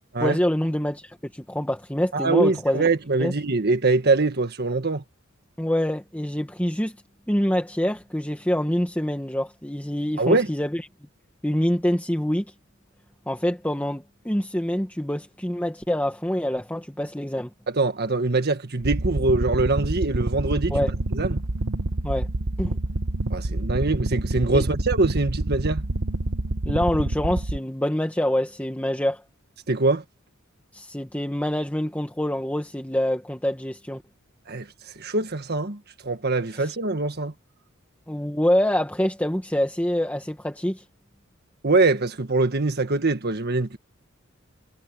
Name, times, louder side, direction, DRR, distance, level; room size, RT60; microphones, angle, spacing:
voice 1, 0.2-2.9 3.2-3.3 5.6-6.9 7.3-10.9 11.4-12.5 13.3-17.5 20.7-20.9 22.0-22.3 22.6-22.8 24.5-24.6 26.7-29.2 30.7-34.0 36.6-36.7 38.1-40.8, left 1 dB, 10° left, 1.8 m, -25 dB
voice 2, 2.1-5.0 10.2-10.5 17.7-20.8 21.1-21.4 23.3-25.8 29.7-30.0 34.5-34.7 35.0-37.3 41.6-43.8, right 3 dB, 50° right, 1.6 m, -23 dB
sound 1, 18.8-27.6, right 2 dB, 80° right, 1.3 m, -27 dB
head